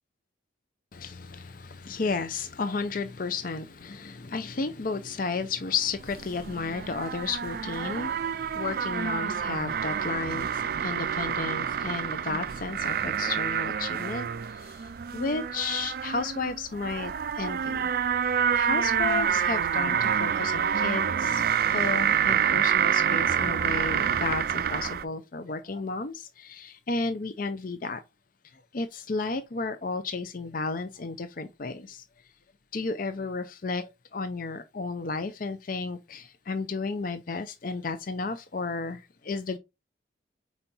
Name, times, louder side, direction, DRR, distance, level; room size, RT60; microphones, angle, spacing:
voice 1, 0.9-17.9 18.5-28.0 28.5-32.0 32.7-39.6, left 4 dB, 45° left, 0.5 m, -33 dB
sound 1, 6.0-25.0, right 8 dB, 50° right, 0.3 m, -27 dB
4.6 x 4.1 x 5.4 m
head